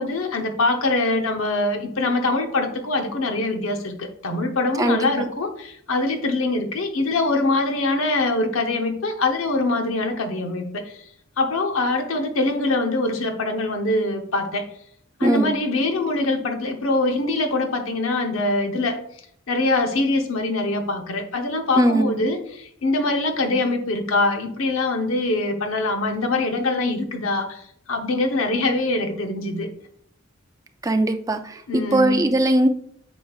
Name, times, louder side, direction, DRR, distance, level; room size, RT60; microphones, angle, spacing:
voice 1, 0.0-11.0 11.4-14.7 15.2-19.0 19.5-27.6 27.9-29.7 31.7-32.3, left 2 dB, 75° left, 5 dB, 0.8 m, -23 dB
voice 2, 4.8-5.3 15.2-15.6 21.8-22.1 30.8-32.7, right 1 dB, 15° right, 7 dB, 0.4 m, -20 dB
8.4 x 5.1 x 2.4 m, 0.68 s
head